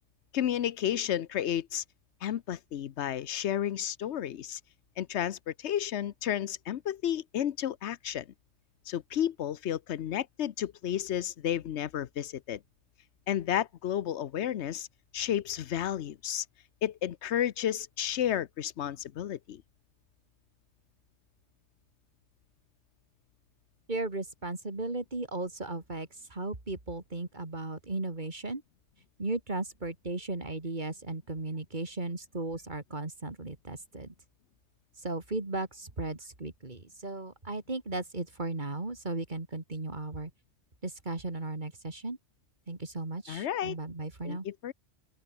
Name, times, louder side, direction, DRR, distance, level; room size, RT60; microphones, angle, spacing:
voice 1, 0.3-1.8 2.2-4.6 5.0-8.3 8.9-12.6 13.3-14.9 15.1-16.4 16.8-19.6 43.3-43.8 44.2-44.7, left 10 dB, 70° left, 1.0 m, -32 dB
voice 2, 23.9-28.6 29.2-34.1 35.0-40.3 40.8-42.2 42.7-44.5, right 2 dB, 40° right, 2.8 m, -36 dB
open air
omnidirectional pair, 1.2 m